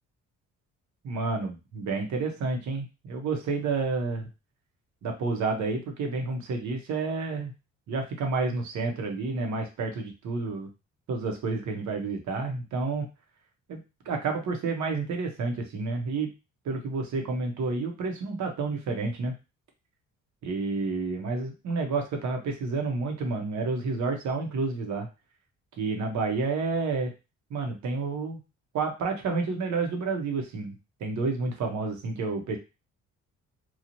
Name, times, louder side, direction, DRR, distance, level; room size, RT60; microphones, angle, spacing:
voice 1, 1.0-4.3 5.0-7.5 7.9-10.7 11.1-13.1 13.7-13.8 14.0-16.3 16.6-19.3 20.4-25.1 25.8-27.1 27.5-28.4 28.7-32.6, right 3 dB, 70° right, 3 dB, 0.9 m, -30 dB
3.0 x 2.3 x 2.6 m, 0.28 s
cardioid pair, 90°, 30 cm